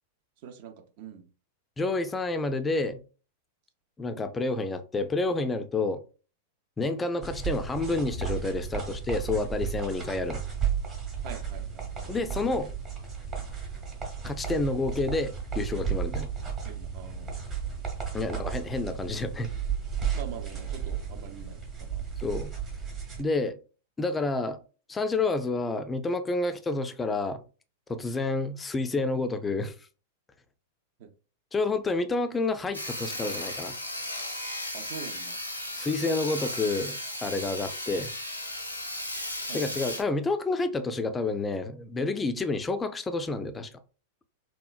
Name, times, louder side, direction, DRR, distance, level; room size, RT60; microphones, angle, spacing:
voice 1, 0.4-1.3 11.2-12.1 16.6-17.5 18.2-18.5 20.1-22.0 31.0-31.1 34.7-35.4 39.5-39.8, right 7 dB, 50° right, 0.5 m, -44 dB
voice 2, 1.8-3.0 4.0-6.0 6.8-10.4 12.1-12.7 14.2-16.3 18.1-19.5 22.2-22.5 23.2-23.6 24.0-24.6 24.9-27.4 27.9-29.7 31.5-33.8 35.7-38.1 39.5-43.7, left 3 dB, 15° left, 0.3 m, -29 dB
sound 1, 7.2-23.2, right 7 dB, 25° right, 0.9 m, -34 dB
Sawing, 32.7-40.0, left 1 dB, 90° left, 0.5 m, -35 dB
3.0 x 2.1 x 2.3 m
figure-of-eight pair, 95°, 0 cm